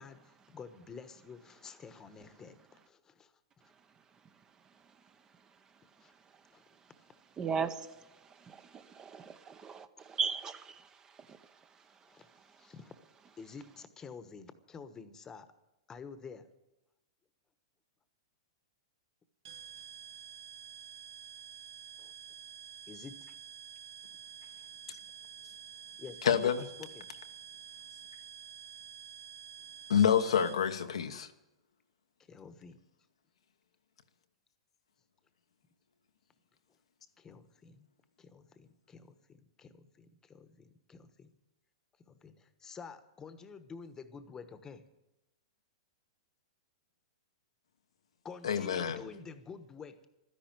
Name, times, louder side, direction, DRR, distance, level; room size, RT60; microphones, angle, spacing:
voice 1, 0.0-3.3 6.0-6.1 6.5-6.6 12.1-12.3 12.6-12.9 13.4-15.5 15.9-16.4 22.0-22.1 22.9-23.3 26.0-26.5 26.8-27.1 32.3-32.8 37.2-37.9 38.2-41.3 42.1-44.8 48.2-50.1, left 5 dB, 20° left, 1.2 m, -49 dB
voice 2, 7.4-10.9 11.3-11.4, right 6 dB, 20° right, 0.9 m, -37 dB
sound 1, 19.4-30.9, right 9 dB, 65° right, 1.2 m, -49 dB
voice 3, 26.2-26.6 29.9-31.3 48.4-49.0, left 8 dB, 85° left, 1.1 m, -28 dB
13.0 x 10.5 x 8.9 m
hypercardioid pair, 125°, 3 cm